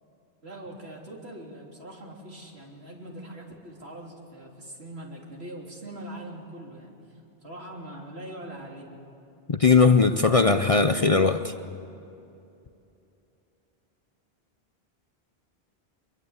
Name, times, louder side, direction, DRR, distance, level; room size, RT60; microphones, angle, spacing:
voice 1, 0.4-6.9 7.4-8.9, right 1 dB, 70° right, -1 dB, 3.7 m, -42 dB
voice 2, 9.5-11.5, left 4 dB, 40° left, 9 dB, 0.7 m, -19 dB
24.0 x 22.5 x 8.2 m, 2.8 s
omnidirectional pair, 1.1 m